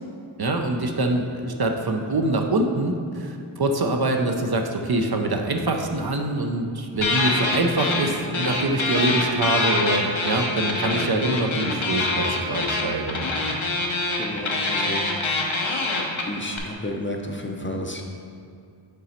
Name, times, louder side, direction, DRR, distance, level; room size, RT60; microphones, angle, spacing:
voice 1, 0.4-13.2, right 2 dB, 50° right, 3 dB, 0.6 m, -24 dB
sound 1, 7.0-8.1 8.3-16.6, left 2 dB, 80° left, 0.9 m, -25 dB
voice 2, 14.2-15.0 16.3-18.0, left 1 dB, 25° left, 2 dB, 0.5 m, -31 dB
7.0 x 3.9 x 4.3 m, 2.5 s
wide cardioid pair, 55°, 47 cm